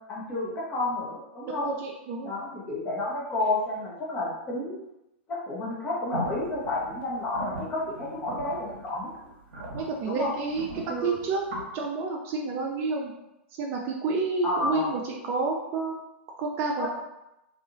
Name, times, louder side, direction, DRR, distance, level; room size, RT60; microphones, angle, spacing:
voice 1, 0.1-1.7 2.2-4.8 5.3-9.1 10.1-10.3 10.7-11.2 14.4-14.9 16.8-16.9, left 2 dB, 25° left, -5 dB, 0.9 m, -31 dB
voice 2, 1.5-2.3 9.7-11.4 11.7-13.1 13.6-15.9 16.4-16.9, right 4 dB, 35° right, 0 dB, 0.4 m, -29 dB
sound 1, 6.1-11.6, equal, 50° right, 0.9 m, -39 dB
2.7 x 2.3 x 2.6 m, 0.91 s
figure-of-eight pair, 100°, 7 cm